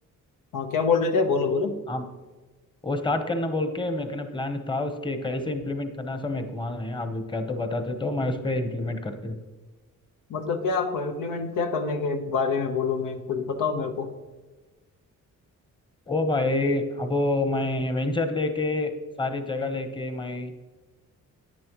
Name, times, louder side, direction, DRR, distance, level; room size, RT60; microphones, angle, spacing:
voice 1, 0.5-1.8 10.3-14.1, left 4 dB, 85° left, 6 dB, 1.1 m, -26 dB
voice 2, 2.8-9.4 16.1-18.9 19.2-20.6, left 2 dB, 15° left, 7 dB, 1.0 m, -28 dB
10.5 x 10.0 x 3.1 m, 1.2 s
cardioid pair, 110°, 32 cm